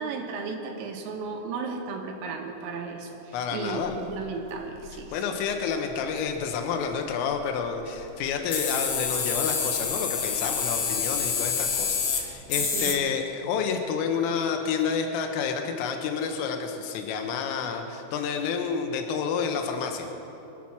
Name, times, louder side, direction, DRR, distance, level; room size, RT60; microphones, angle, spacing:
voice 1, 0.0-5.4 12.6-13.0, right 4 dB, 85° right, 1 dB, 4.1 m, -35 dB
voice 2, 3.3-4.0 5.1-20.1, left 6 dB, 85° left, 4 dB, 3.7 m, -29 dB
sound 1, 3.8-4.1 4.8-5.0 8.0-8.1 8.3-13.0, left 6 dB, 65° left, 2.2 m, -27 dB
24.0 x 9.1 x 6.0 m, 3.0 s
omnidirectional pair, 5.8 m